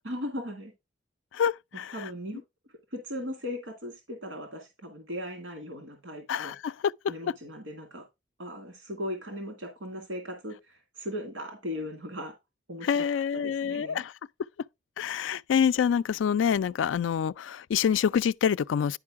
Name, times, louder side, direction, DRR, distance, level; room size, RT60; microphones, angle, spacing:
voice 1, 0.0-0.7 1.9-2.4 2.9-6.6 7.1-8.0 8.4-12.4 12.7-13.1 13.3-14.0, left 1 dB, 80° right, 2.0 m, -38 dB
voice 2, 1.3-1.9 6.3-6.7 12.8-14.1 15.0-19.0, left 7 dB, 90° left, 0.3 m, -26 dB
10.5 x 4.6 x 3.5 m
head